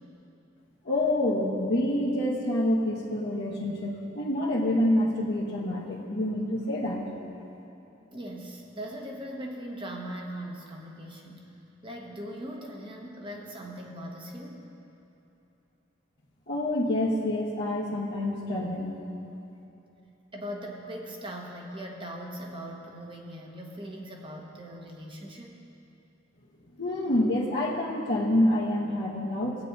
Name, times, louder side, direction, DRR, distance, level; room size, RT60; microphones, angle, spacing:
voice 1, 0.8-7.0 16.5-18.9 26.8-29.6, left 1 dB, 60° left, -8 dB, 1.1 m, -27 dB
voice 2, 8.1-11.5 11.8-14.6 20.3-25.5, equal, 25° right, 0 dB, 1.1 m, -40 dB
17.0 x 9.1 x 2.7 m, 2.9 s
head